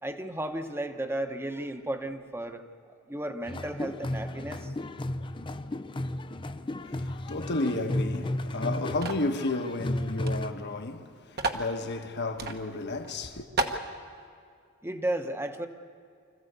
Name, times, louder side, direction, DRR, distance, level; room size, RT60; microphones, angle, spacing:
voice 1, 0.0-2.6 3.1-4.7 14.8-15.7, right 1 dB, 10° right, 1.0 m, -34 dB
sound 1, 3.5-10.5, left 1 dB, 25° left, 0.5 m, -33 dB
voice 2, 6.8-13.5, left 2 dB, 55° left, 1.3 m, -32 dB
sound 2, 9.0-9.3 10.2-10.3 10.6-10.7 11.4-11.7 12.4-12.6 13.0-13.1 13.6-13.8, right 2 dB, 50° right, 1.2 m, -30 dB
25.5 x 14.5 x 8.2 m
head